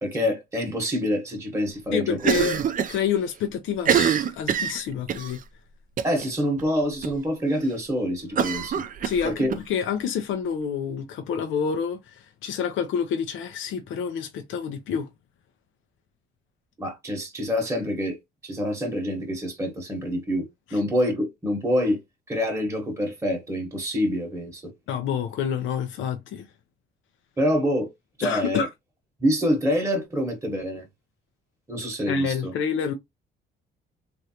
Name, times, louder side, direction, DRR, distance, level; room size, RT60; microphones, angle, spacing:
voice 1, 0.0-2.2 6.0-8.8 9.2-9.5 16.8-18.2 18.4-20.5 20.7-22.0 22.3-24.7 27.4-27.9 28.2-28.7 29.2-30.8 31.7-32.5, equal, 15° right, 1.1 m, -26 dB
voice 2, 1.9-2.6 2.9-5.4 9.0-15.1 20.7-20.8 24.9-26.4 28.2-28.7 32.1-32.9, left 7 dB, 80° left, 0.5 m, -28 dB
Cough, 2.2-3.0 3.3-3.4 3.8-5.3 6.0-6.3 6.6-6.7 7.0-7.1 8.4-9.6, right 8 dB, 45° right, 0.4 m, -24 dB
3.1 x 2.5 x 2.8 m
cardioid pair, 90°, 20 cm